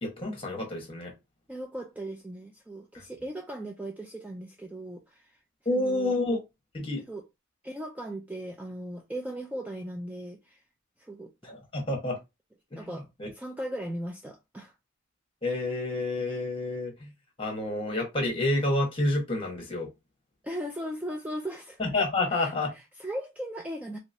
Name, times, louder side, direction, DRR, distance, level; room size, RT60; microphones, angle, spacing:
voice 1, 0.0-1.1 5.6-6.4 6.7-7.0 11.4-12.2 12.7-13.3 15.4-17.1 17.4-19.9 21.8-22.7, left 2 dB, 25° left, 1.3 m, -29 dB
voice 2, 1.5-5.4 5.7-6.1 7.1-7.2 7.6-10.6 11.0-11.3 12.7-14.7 20.4-21.8 22.3-24.0, right 1 dB, 5° right, 0.3 m, -38 dB
3.3 x 2.9 x 2.7 m
head